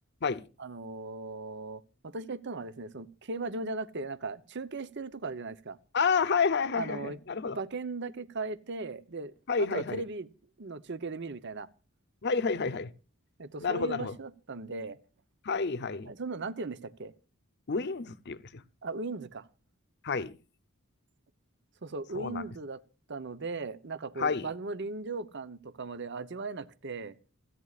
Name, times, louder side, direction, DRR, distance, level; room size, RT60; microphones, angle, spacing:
voice 1, 0.6-5.8 6.8-7.2 7.6-9.3 9.6-10.3 10.6-11.7 13.4-15.0 16.1-17.1 18.8-19.5 21.8-22.8 23.1-27.2, right 3 dB, 55° right, 0.8 m, -38 dB
voice 2, 5.9-7.6 9.5-10.0 12.2-12.9 13.6-14.1 15.4-16.1 17.7-18.6 20.0-20.3 22.1-22.5 24.2-24.5, left 5 dB, 50° left, 0.7 m, -29 dB
28.0 x 9.6 x 2.4 m
head